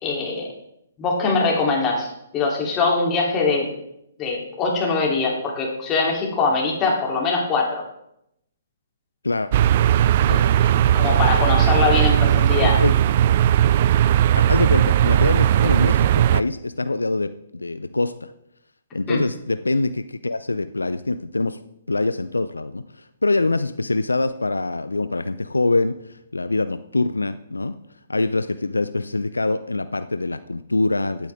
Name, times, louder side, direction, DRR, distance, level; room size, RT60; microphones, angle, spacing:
voice 1, 0.0-0.5 1.0-3.7 4.2-7.8 10.3-10.7 10.9-12.8 19.1-19.2, left 4 dB, 25° left, -2 dB, 3.1 m, -22 dB
sound 1, 9.5-16.4, right 11 dB, 45° right, 0.3 m, -17 dB
voice 2, 12.3-13.0 14.4-18.3 18.9-21.6 21.9-27.8 28.1-31.3, left 2 dB, 85° left, 12 dB, 0.5 m, -24 dB
15.5 x 8.7 x 3.6 m, 0.79 s
figure-of-eight pair, 125°, 0 cm